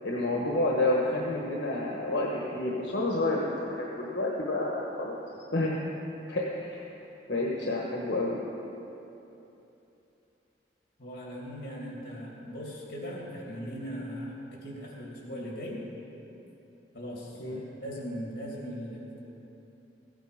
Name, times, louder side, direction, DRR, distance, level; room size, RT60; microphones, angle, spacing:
voice 1, 0.0-5.2 5.5-5.8 6.3-6.8 7.3-8.4 17.4-17.6, left 2 dB, 80° left, -3 dB, 1.3 m, -29 dB
voice 2, 11.0-15.9 16.9-19.2, equal, 55° left, -3 dB, 2.9 m, -39 dB
15.0 x 9.2 x 5.1 m, 3.0 s
head